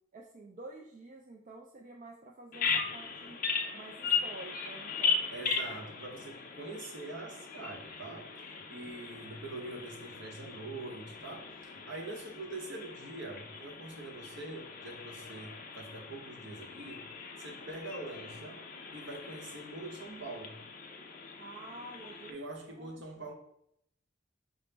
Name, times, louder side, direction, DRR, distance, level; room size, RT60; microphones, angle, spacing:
voice 1, 0.1-3.4 3.7-5.2 21.4-23.3, right 2 dB, 40° right, 0 dB, 0.3 m, -49 dB
Bird vocalization bird call bird song, 2.5-22.3, left 5 dB, 45° left, 0.4 m, -38 dB
voice 2, 5.3-8.3 8.7-17.1 17.4-18.6 18.9-20.6 22.3-23.3, right 2 dB, 65° right, 2 dB, 0.8 m, -44 dB
5.0 x 2.0 x 3.2 m, 0.74 s
head